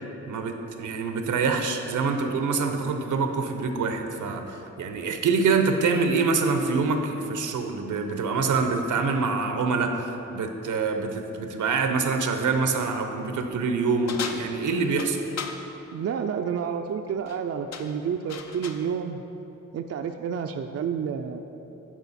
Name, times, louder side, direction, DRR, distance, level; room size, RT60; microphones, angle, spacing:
voice 1, 0.3-15.2, right 4 dB, 80° right, 5 dB, 0.7 m, -25 dB
sound 1, 14.1-15.6 17.1-17.4 17.7-18.9, left 5 dB, 60° left, 0.7 m, -36 dB
voice 2, 15.9-19.2 19.7-21.4, right 7 dB, 55° right, 6 dB, 0.4 m, -30 dB
11.0 x 4.5 x 4.1 m, 3.0 s
cardioid pair, 70°, 30 cm